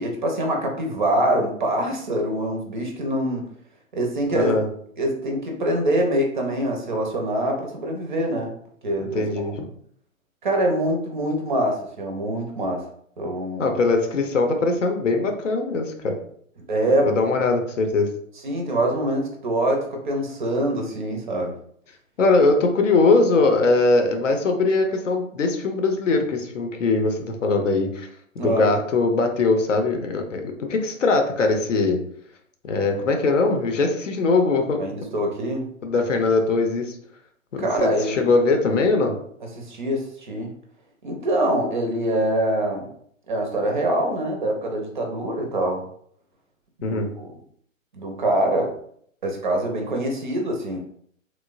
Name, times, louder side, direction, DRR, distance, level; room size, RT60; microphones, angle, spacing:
voice 1, 0.0-3.5 3.9-4.5 5.0-8.5 8.8-9.3 10.4-12.8 13.2-13.7 16.7-17.1 18.4-21.5 28.4-28.7 34.8-35.7 37.6-38.2 39.6-40.5 41.0-42.9 43.3-45.8 46.8-47.3 47.9-48.7 49.2-50.8, right 1 dB, 40° right, 1 dB, 0.5 m, -24 dB
voice 2, 4.3-4.7 9.1-9.6 13.6-16.1 17.0-18.1 22.2-28.1 28.4-32.0 32.6-34.8 35.8-37.0 37.5-39.1 46.8-47.1, left 3 dB, 65° left, 4 dB, 0.6 m, -21 dB
3.0 x 2.0 x 2.4 m, 0.65 s
figure-of-eight pair, 120°, 40 cm